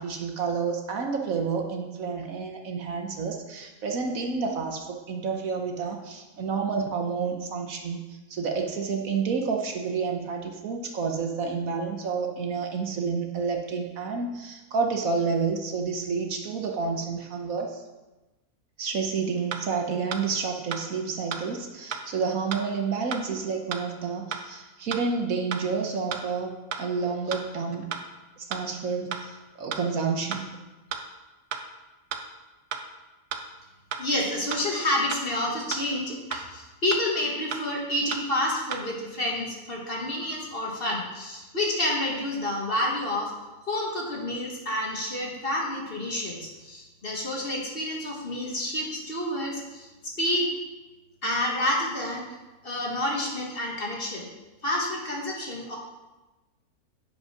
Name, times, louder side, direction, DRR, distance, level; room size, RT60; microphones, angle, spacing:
voice 1, 0.0-17.8 18.8-27.9 28.4-30.6, right 5 dB, 65° right, 3 dB, 1.3 m, -29 dB
sound 1, 19.5-19.6 20.1-20.2 20.7-20.8 21.3-21.4 21.9-22.0 22.5-22.6 23.1-23.2 23.7-23.8 24.3-24.4 24.9-25.0 25.5-25.6 26.1-26.2 26.7-26.8 27.3-27.4 27.9-28.0 28.5-28.6 29.1-29.2 29.7-29.8 30.3-30.4 30.9-31.0 31.5-31.6 32.1-32.2 32.7-32.8 33.3-33.4 33.9-34.0 34.5-34.6 35.1-35.2 35.7-35.8 36.3-36.4 36.9-37.0 37.5-37.6 38.1-38.2 38.7-38.8, right 7 dB, 85° right, 1.4 m, -32 dB
voice 2, 34.0-43.3 43.7-50.5 51.2-52.3 52.6-54.3 54.6-55.8, left 1 dB, 40° left, -2 dB, 1.8 m, -29 dB
9.4 x 5.5 x 5.8 m, 1.1 s
omnidirectional pair, 1.6 m